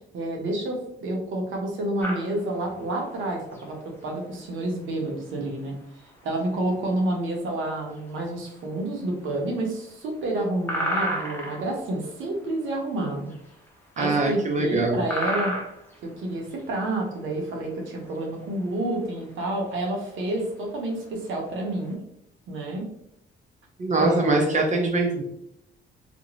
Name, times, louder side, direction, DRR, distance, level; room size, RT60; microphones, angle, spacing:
voice 1, 0.1-5.7 6.2-13.3 14.0-15.5 16.0-22.0 22.5-22.9 24.0-24.6, right 1 dB, 80° right, 0 dB, 0.8 m, -29 dB
sound 1, 2.0-21.9, equal, 10° left, 0.7 m, -35 dB
voice 2, 14.0-15.0 23.8-25.2, right 2 dB, 40° right, 0 dB, 0.5 m, -23 dB
2.5 x 2.2 x 3.0 m, 0.76 s
cardioid pair, 90°, 20 cm